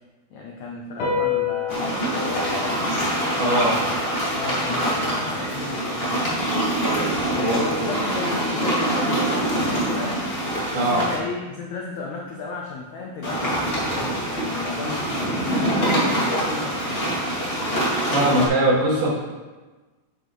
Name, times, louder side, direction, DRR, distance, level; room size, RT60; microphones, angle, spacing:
voice 1, 0.3-3.0 4.3-6.3 7.3-10.2 10.7-17.1, left 4 dB, 85° left, -2 dB, 1.6 m, -34 dB
sound 1, 1.0-7.7, left 7 dB, 55° left, 2.5 m, -32 dB
sound 2, 1.7-11.2 13.2-18.5, right 1 dB, 25° left, 1.4 m, -24 dB
voice 2, 3.4-3.8 7.4-7.9 10.7-11.1 18.1-19.2, right 1 dB, 70° right, -6 dB, 4.1 m, -21 dB
9.6 x 7.9 x 3.2 m, 1.2 s
omnidirectional pair, 4.6 m